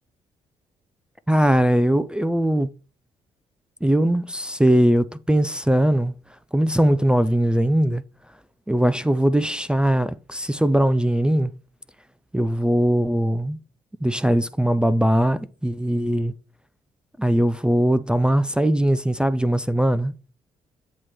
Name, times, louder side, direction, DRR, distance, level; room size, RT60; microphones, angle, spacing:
voice 1, 1.3-2.7 3.8-6.1 6.5-8.0 8.7-11.5 12.3-13.6 14.0-16.3 17.2-20.1, right 1 dB, 5° right, 0.5 m, -20 dB
8.0 x 3.0 x 5.8 m
hypercardioid pair, 45°, 17 cm